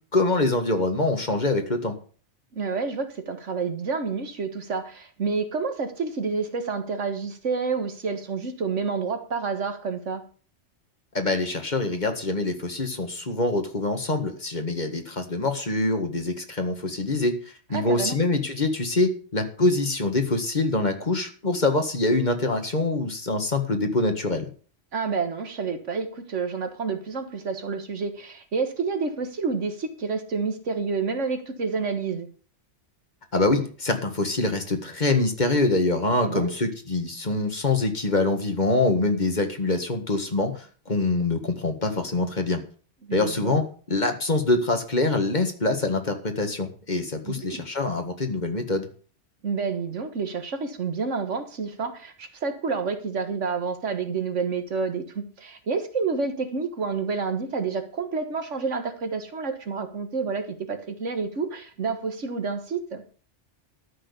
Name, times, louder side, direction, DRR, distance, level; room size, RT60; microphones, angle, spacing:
voice 1, 0.1-1.9 11.1-24.5 33.3-42.6 43.1-43.6 43.9-48.9, left 2 dB, 40° left, 5 dB, 1.9 m, -25 dB
voice 2, 2.5-10.2 17.7-18.2 24.9-32.3 36.2-36.5 43.0-43.5 47.2-47.6 49.4-63.0, right 5 dB, 85° right, 8 dB, 1.9 m, -29 dB
13.0 x 6.4 x 6.9 m, 0.41 s
omnidirectional pair, 1.2 m